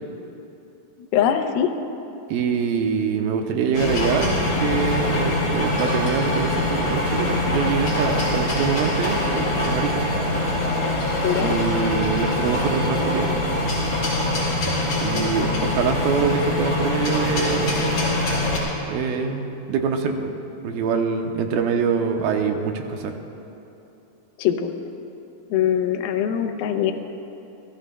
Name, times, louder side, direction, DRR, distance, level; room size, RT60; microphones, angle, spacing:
voice 1, 1.0-1.7 11.2-11.5 15.1-15.3 24.4-24.7 25.5-26.9, left 9 dB, 90° left, 6 dB, 2.6 m, -22 dB
voice 2, 2.3-10.0 11.3-13.3 15.0-18.0 18.9-20.3 20.6-23.1, right 6 dB, 90° right, 4 dB, 2.6 m, -24 dB
sound 1, 3.7-18.6, left 2 dB, 50° left, 4.3 m, -23 dB
26.5 x 14.5 x 2.2 m, 2.9 s
omnidirectional pair, 4.2 m